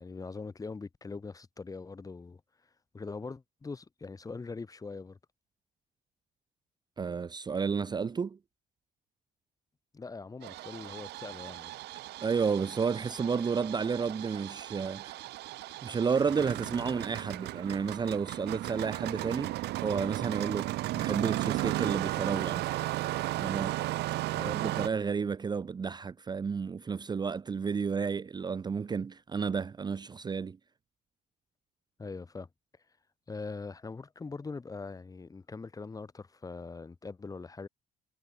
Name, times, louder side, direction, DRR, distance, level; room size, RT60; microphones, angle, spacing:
voice 1, 0.0-2.4 2.9-5.2 9.9-11.8 24.3-24.6 32.0-32.5 33.3-37.7, left 4 dB, 20° left, 1.6 m, -42 dB
voice 2, 7.0-8.4 12.2-15.2 15.8-22.7 23.3-23.8 24.4-30.6, right 5 dB, 25° right, 0.6 m, -32 dB
Engine starting, 10.4-24.9, right 17 dB, 80° right, 1.3 m, -35 dB
cardioid pair, 110°, 17 cm